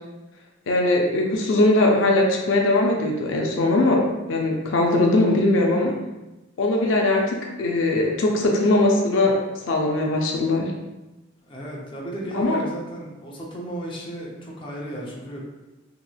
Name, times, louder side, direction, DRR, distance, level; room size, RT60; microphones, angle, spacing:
voice 1, 0.7-4.0 4.3-5.9 6.6-9.3 9.7-10.7 12.3-12.6, left 2 dB, 80° left, 0 dB, 0.4 m, -20 dB
voice 2, 11.4-15.5, right 1 dB, 25° left, -3 dB, 0.6 m, -34 dB
2.9 x 2.9 x 2.3 m, 1.0 s
head